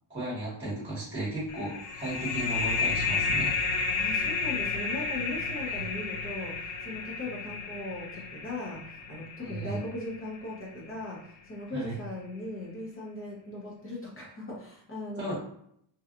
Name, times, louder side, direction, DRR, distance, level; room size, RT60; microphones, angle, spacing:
voice 1, 0.1-3.5 9.4-9.8 11.7-11.9 15.2-15.3, right 1 dB, 25° right, -8 dB, 1.0 m, -35 dB
sound 1, 1.5-10.8, left 4 dB, 85° left, 0.6 m, -32 dB
voice 2, 4.0-15.3, left 2 dB, 30° left, -4 dB, 0.8 m, -38 dB
2.8 x 2.3 x 2.5 m, 0.70 s
wide cardioid pair, 165°, 46 cm